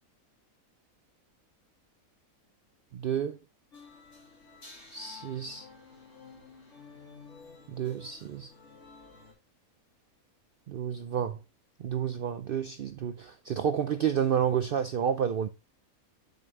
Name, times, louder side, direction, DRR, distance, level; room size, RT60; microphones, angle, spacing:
voice 1, 2.9-3.4 4.9-5.7 7.7-8.5 10.7-11.4 11.8-15.5, right 8 dB, 75° right, 0.5 m, -30 dB
sound 1, 3.7-9.3, left 4 dB, 55° left, 2.9 m, -52 dB
7.0 x 5.9 x 3.2 m
omnidirectional pair, 1.5 m